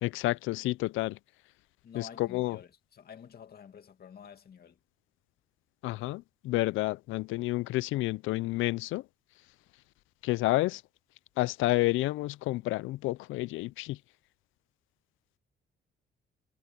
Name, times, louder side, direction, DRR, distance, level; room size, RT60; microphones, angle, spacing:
voice 1, 0.0-1.2 1.9-2.6 5.8-9.0 10.2-10.8 11.4-14.0, left 19 dB, 90° left, 0.4 m, -30 dB
voice 2, 1.8-4.8, left 7 dB, 50° left, 2.3 m, -49 dB
cardioid pair, 90°, 20 cm